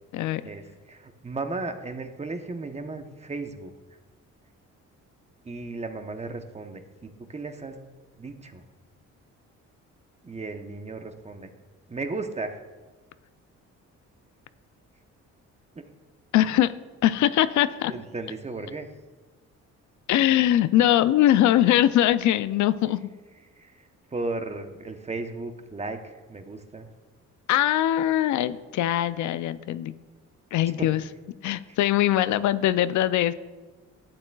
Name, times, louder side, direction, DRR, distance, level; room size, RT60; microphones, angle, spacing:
voice 1, 0.4-3.7 5.4-7.8 8.2-8.6 10.2-11.5 11.9-12.6 15.7-15.9 17.9-18.9 23.6-26.9 30.8-30.9, right 3 dB, 20° right, 7 dB, 0.8 m, -35 dB
voice 2, 16.3-16.7 17.0-17.9 20.1-23.1 27.5-29.9 30.5-31.0 31.4-33.3, left 12 dB, 70° left, 14 dB, 0.5 m, -22 dB
12.0 x 8.8 x 2.3 m, 1.3 s
cardioid pair, 90°, 30 cm